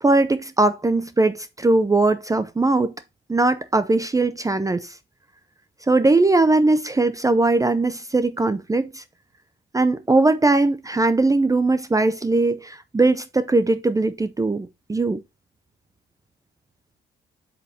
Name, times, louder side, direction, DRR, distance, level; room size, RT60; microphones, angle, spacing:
voice 1, 0.0-2.9 3.3-4.9 5.9-9.0 9.7-15.2, right 2 dB, 15° right, 0.6 m, -20 dB
7.9 x 5.5 x 2.8 m
cardioid pair, 90°, 20 cm